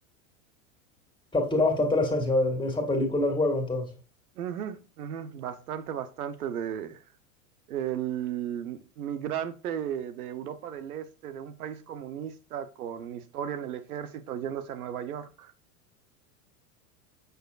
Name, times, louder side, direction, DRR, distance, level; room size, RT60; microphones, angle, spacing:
voice 1, 1.3-3.9, left 2 dB, 10° left, 1.9 m, -25 dB
voice 2, 4.4-7.0 7.7-15.5, right 9 dB, 85° right, 0.8 m, -35 dB
6.9 x 6.3 x 2.4 m
hypercardioid pair, 100°, 43 cm